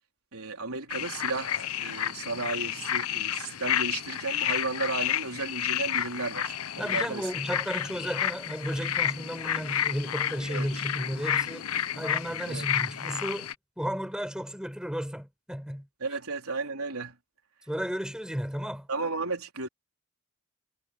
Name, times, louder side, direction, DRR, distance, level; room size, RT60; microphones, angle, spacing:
voice 1, 0.3-7.3 10.5-10.7 12.5-12.7 16.0-17.2 18.9-19.7, right 3 dB, 90° right, 4.0 m, -34 dB
sound 1, 0.9-13.5, left 10 dB, 90° left, 0.9 m, -31 dB
voice 2, 6.8-15.9 17.7-18.9, equal, 5° right, 5.9 m, -34 dB
head